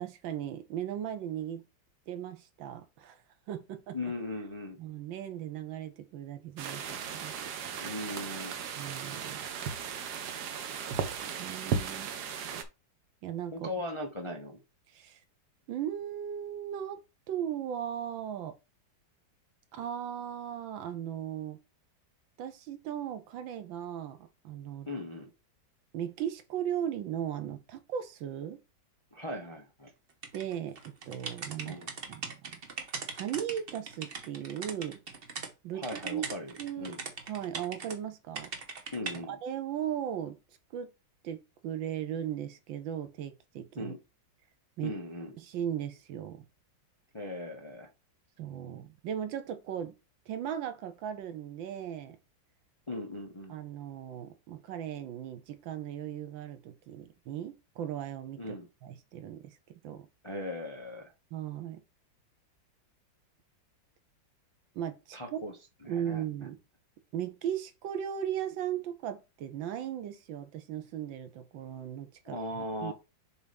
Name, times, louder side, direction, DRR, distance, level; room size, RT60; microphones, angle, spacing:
voice 1, 0.0-1.7 2.1-3.2 3.5-4.0 4.8-7.3 8.7-9.4 11.4-12.1 13.2-13.7 14.9-15.2 15.7-17.0 17.3-18.6 19.7-21.6 22.4-24.9 25.9-28.6 30.3-31.8 32.1-32.6 33.1-35.0 35.6-36.3 36.6-37.0 37.3-38.5 39.3-40.4 40.7-40.9 41.2-43.9 44.8-44.9 45.4-46.5 48.4-49.9 50.3-52.2 53.5-58.6 58.8-60.1 61.3-61.8 64.7-65.4 65.8-66.6 67.1-72.9, right 10 dB, 85° right, 1.6 m, -37 dB
voice 2, 3.9-4.8 7.8-8.5 13.5-14.6 24.9-25.3 29.1-29.9 31.6-31.9 35.7-37.0 38.9-39.4 43.8-44.0 44.8-45.3 47.1-47.9 52.9-53.6 58.4-58.7 60.2-61.1 65.1-65.5 65.8-66.2 72.2-72.9, left 1 dB, 30° left, 0.5 m, -38 dB
sound 1, 6.6-12.6, right 6 dB, 65° right, 1.3 m, -36 dB
sound 2, 30.2-35.5 35.8-38.0 38.3-39.2, right 5 dB, 40° right, 0.8 m, -40 dB
6.9 x 2.7 x 5.2 m
omnidirectional pair, 2.0 m